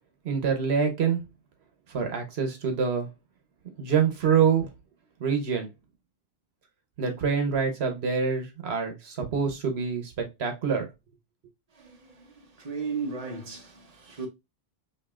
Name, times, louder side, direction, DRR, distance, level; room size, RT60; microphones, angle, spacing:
voice 1, 0.2-1.2 1.9-3.1 3.8-4.7 5.2-5.7 7.0-10.9, right 6 dB, 80° right, 1.2 m, -26 dB
voice 2, 11.7-14.3, right 5 dB, 40° right, 1.1 m, -36 dB
5.2 x 2.8 x 2.4 m
omnidirectional pair, 1.1 m